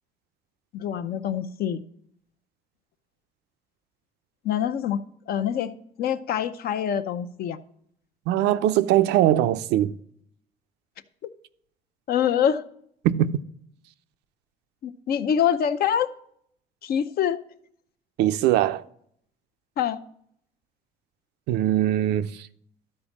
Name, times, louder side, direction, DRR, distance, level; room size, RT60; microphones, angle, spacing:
voice 1, 0.7-1.8 4.4-7.6 12.1-12.6 14.8-16.1 16.8-17.4 19.8-20.0, left 9 dB, 65° left, 0.7 m, -25 dB
voice 2, 8.3-9.9 13.0-13.4 18.2-18.8 21.5-22.5, right 12 dB, 85° right, 0.5 m, -21 dB
12.5 x 4.4 x 7.2 m
cardioid pair, 110°, 17 cm